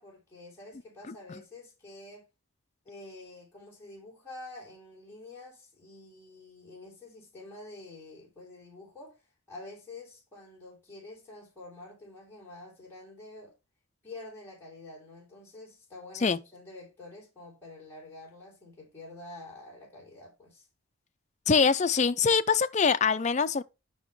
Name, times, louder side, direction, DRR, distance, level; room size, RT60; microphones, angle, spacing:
voice 1, 0.0-2.3 2.8-13.5 14.0-20.7, left 2 dB, 10° left, 3.4 m, -48 dB
voice 2, 21.5-23.6, left 5 dB, 35° left, 0.4 m, -24 dB
7.1 x 6.0 x 3.1 m
head